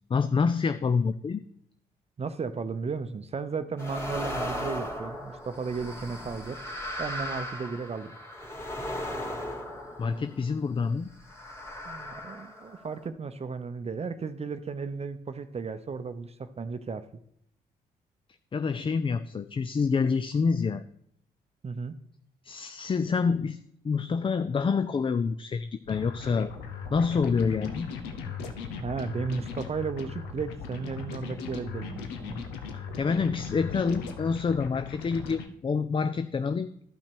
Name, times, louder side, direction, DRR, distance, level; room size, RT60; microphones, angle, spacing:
voice 1, 0.1-1.4 10.0-11.1 18.5-20.8 22.4-23.6 23.8-26.5 26.9-27.9 33.0-36.7, left 5 dB, 30° left, 12 dB, 0.4 m, -27 dB
voice 2, 2.2-6.6 7.0-8.2 11.8-17.0 21.6-21.9 28.7-32.4, right 5 dB, 35° right, 10 dB, 0.7 m, -34 dB
sound 1, 3.8-10.6 11.2-13.1, left 1 dB, 15° left, 2.5 m, -37 dB
sound 2, 25.9-35.5, left 5 dB, 90° left, 0.8 m, -38 dB
12.0 x 5.8 x 4.6 m, 0.71 s
supercardioid pair, 55°, 17 cm